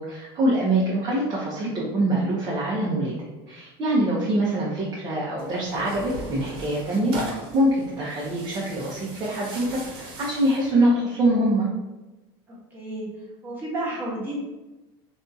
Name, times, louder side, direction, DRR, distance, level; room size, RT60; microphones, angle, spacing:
voice 1, 0.0-3.1 3.5-11.7, right 1 dB, 30° right, -5 dB, 0.7 m, -24 dB
Tearing, 5.4-10.7, right 1 dB, 85° right, 0.8 m, -38 dB
voice 2, 12.5-13.1 13.4-14.4, right 1 dB, 15° right, -6 dB, 1.1 m, -31 dB
2.6 x 2.3 x 2.7 m, 1.1 s
supercardioid pair, 130°, 13 cm